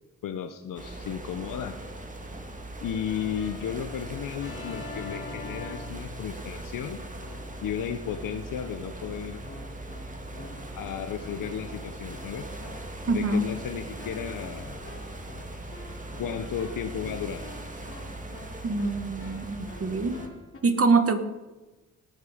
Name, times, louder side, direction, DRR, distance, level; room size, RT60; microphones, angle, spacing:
voice 1, 0.2-1.8 2.8-7.0 7.6-9.4 10.8-12.5 13.1-14.8 16.2-17.5, left 8 dB, 85° left, 7 dB, 0.8 m, -34 dB
sound 1, 0.8-20.3, right 1 dB, 25° right, 2.0 m, -40 dB
Keyboard (musical), 3.1-6.7 7.2-7.7 8.1-20.6, left 3 dB, 40° left, 3.3 m, -46 dB
voice 2, 13.1-13.4 18.6-20.2 20.6-21.2, right 3 dB, 45° right, 8 dB, 1.5 m, -24 dB
18.0 x 8.4 x 5.0 m, 1.1 s
cardioid pair, 70°, 32 cm